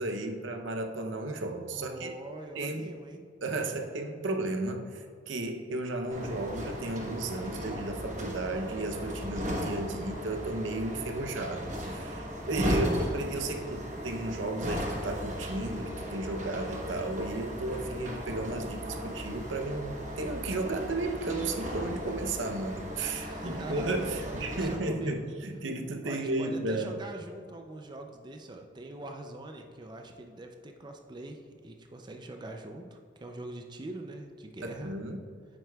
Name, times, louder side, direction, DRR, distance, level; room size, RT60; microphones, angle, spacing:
voice 1, 0.0-2.1 2.5-2.9 3.4-27.0 34.6-35.2, right 2 dB, 80° right, 5 dB, 0.7 m, -34 dB
voice 2, 1.7-3.2 23.1-25.2 26.0-34.9, right 1 dB, 25° right, 4 dB, 0.4 m, -43 dB
sound 1, 6.1-24.8, equal, 40° right, 1.0 m, -36 dB
9.4 x 7.7 x 2.3 m, 2.1 s
head